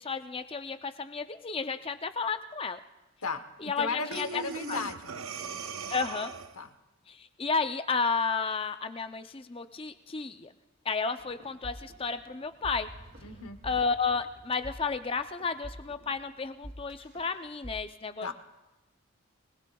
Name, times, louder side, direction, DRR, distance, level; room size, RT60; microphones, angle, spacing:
voice 1, 0.0-2.8 3.6-4.4 4.7-4.8 5.9-6.3 7.1-10.5 10.9-12.9 13.6-18.3, left 5 dB, 25° left, 9 dB, 0.5 m, -32 dB
voice 2, 3.2-5.6 6.6-6.7 13.2-13.6 18.2-18.3, left 4 dB, 85° left, 9 dB, 0.9 m, -36 dB
Breathing, 4.1-6.7, right 5 dB, 70° right, 0.6 m, -39 dB
sound 1, 11.2-17.7, equal, 50° right, 2.6 m, -48 dB
24.0 x 18.5 x 2.3 m, 1.0 s
head